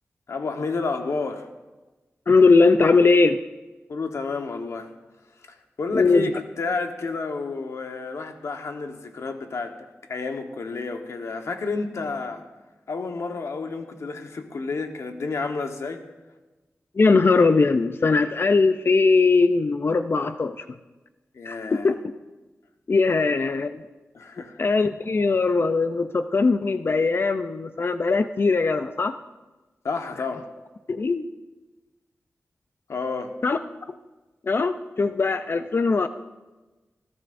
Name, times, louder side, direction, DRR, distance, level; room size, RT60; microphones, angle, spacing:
voice 1, 0.3-1.5 3.9-4.9 5.8-12.4 12.9-16.0 21.3-21.9 24.1-24.6 29.8-30.5 32.9-33.3, left 4 dB, 80° left, 5 dB, 1.2 m, -30 dB
voice 2, 2.3-3.4 5.9-6.3 17.0-20.6 21.5-22.0 22.9-23.8 24.6-29.1 30.9-31.3 33.4-33.6 34.4-36.1, left 4 dB, 50° left, 10 dB, 0.5 m, -20 dB
20.0 x 14.5 x 2.6 m, 1.2 s
wide cardioid pair, 80°, 5 cm